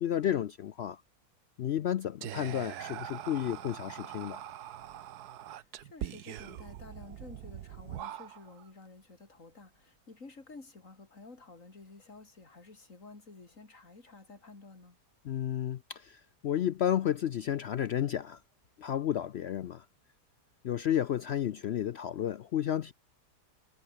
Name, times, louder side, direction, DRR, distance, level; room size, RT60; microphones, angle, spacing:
voice 1, 0.0-1.0 1.6-4.5 15.2-18.4 18.8-19.8 20.6-22.9, left 10 dB, 90° left, 0.5 m, -32 dB
Whispering, 2.2-8.7, right 11 dB, 70° right, 1.4 m, -43 dB
voice 2, 5.5-15.0, left 3 dB, 50° left, 4.1 m, -52 dB
omnidirectional pair, 1.8 m